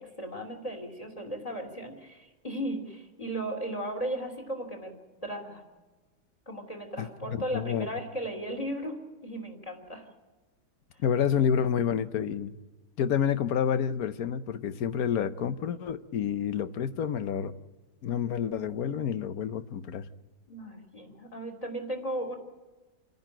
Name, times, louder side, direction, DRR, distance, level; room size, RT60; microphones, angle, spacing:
voice 1, 0.0-4.9 5.2-5.6 6.4-10.1 20.5-22.3, right 1 dB, 20° left, 3 dB, 3.3 m, -36 dB
voice 2, 7.0-7.9 11.0-12.5 13.0-17.5 18.0-20.0, left 8 dB, 60° left, 13 dB, 1.2 m, -29 dB
28.5 x 10.5 x 9.0 m, 1.3 s
omnidirectional pair, 1.9 m